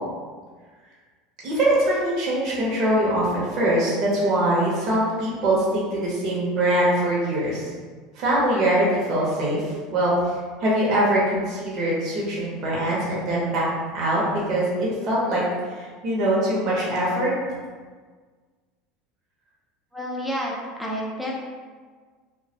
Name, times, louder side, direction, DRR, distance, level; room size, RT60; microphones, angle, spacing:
voice 1, 1.4-7.7 8.2-9.6 9.9-10.3 10.6-13.7 13.9-15.4 15.7-17.3, right 1 dB, 50° right, -6 dB, 0.7 m, -23 dB
voice 2, 19.9-21.3, equal, ahead, -3 dB, 0.5 m, -29 dB
2.2 x 2.1 x 2.7 m, 1.5 s
supercardioid pair, 110°, 0 cm